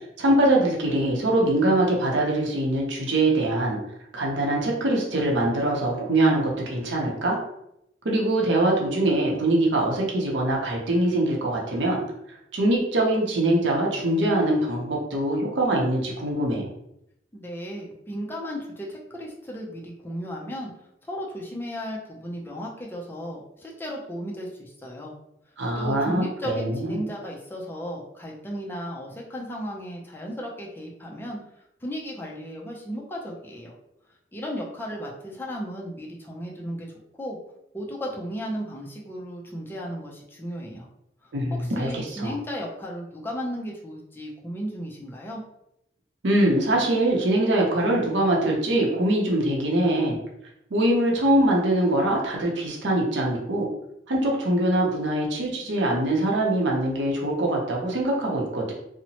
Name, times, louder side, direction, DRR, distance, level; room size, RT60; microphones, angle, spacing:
voice 1, 0.2-3.8 4.1-7.4 8.0-12.0 12.5-16.7 25.6-27.0 41.3-42.3 46.2-50.2 50.7-53.7 54.1-58.7, right 1 dB, 80° right, -2 dB, 0.7 m, -23 dB
voice 2, 17.3-20.7 21.1-25.1 25.8-31.4 31.8-33.7 34.3-36.9 37.2-37.4 37.7-40.9 41.6-45.4, equal, 10° left, -3 dB, 0.4 m, -35 dB
2.8 x 2.0 x 2.7 m, 0.80 s
head